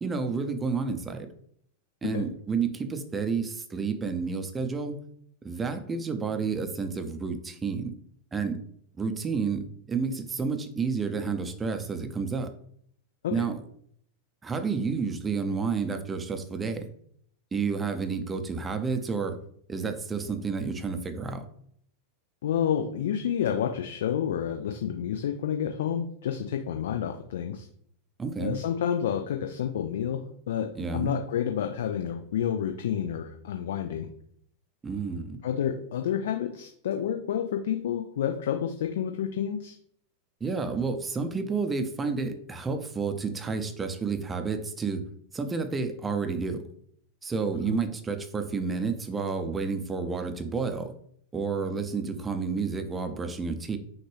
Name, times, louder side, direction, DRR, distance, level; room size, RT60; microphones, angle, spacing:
voice 1, 0.0-1.3 2.0-5.0 5.4-7.9 8.3-8.6 9.0-12.5 13.3-13.6 14.4-16.8 17.5-19.4 19.7-21.5 28.2-28.6 30.8-31.2 34.8-35.4 40.4-45.0 45.3-46.6 47.2-50.9 51.3-53.8, right 5 dB, 15° right, 7 dB, 0.6 m, -30 dB
voice 2, 22.4-27.7 28.4-30.2 30.5-34.1 35.4-39.7 47.7-47.8, left 9 dB, 60° left, 5 dB, 0.4 m, -29 dB
6.0 x 2.5 x 3.3 m, 0.65 s
figure-of-eight pair, 90°, 0 cm